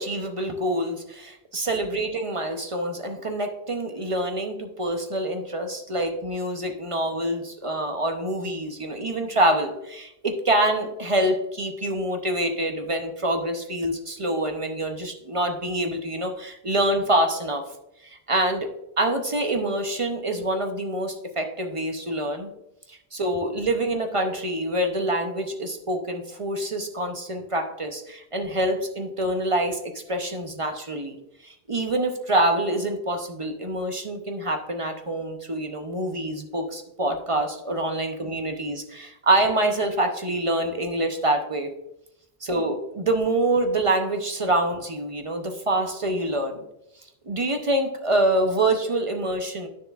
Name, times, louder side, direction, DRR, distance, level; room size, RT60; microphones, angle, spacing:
voice 1, 0.0-17.6 18.0-18.7 19.0-22.5 22.9-31.2 31.4-41.7 42.4-46.6 47.3-49.7, right 1 dB, 35° right, 5 dB, 0.6 m, -26 dB
9.6 x 6.7 x 2.4 m, 0.85 s
omnidirectional pair, 1.1 m